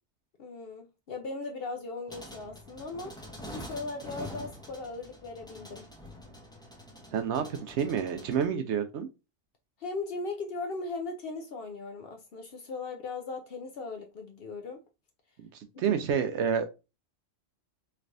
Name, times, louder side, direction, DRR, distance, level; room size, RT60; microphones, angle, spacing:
voice 1, 0.4-5.9 9.8-14.8 15.8-16.0, left 3 dB, 60° left, 0.7 m, -38 dB
sound 1, 2.1-8.5, equal, 5° left, 0.5 m, -46 dB
voice 2, 7.1-9.1 15.4-16.7, right 7 dB, 65° right, 0.8 m, -29 dB
3.3 x 3.1 x 2.5 m
omnidirectional pair, 1.4 m